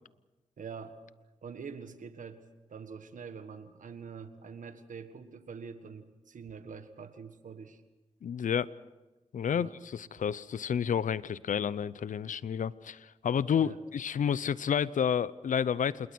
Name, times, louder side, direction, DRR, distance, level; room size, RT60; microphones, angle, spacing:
voice 1, 0.6-1.0 1.4-2.4 2.7-7.8 9.5-9.7 13.6-13.8, right 6 dB, 80° right, 9 dB, 1.7 m, -45 dB
voice 2, 8.2-8.7 9.3-16.1, left 8 dB, 85° left, 18 dB, 0.6 m, -30 dB
27.5 x 21.0 x 6.1 m, 1.1 s
cardioid pair, 45°, 13 cm